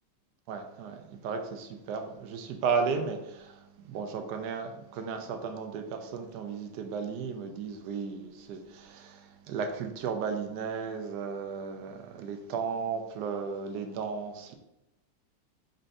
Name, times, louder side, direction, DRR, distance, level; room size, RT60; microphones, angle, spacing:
voice 1, 0.5-14.6, right 5 dB, 75° right, 1.1 m, -34 dB
5.2 x 3.3 x 2.6 m
omnidirectional pair, 2.0 m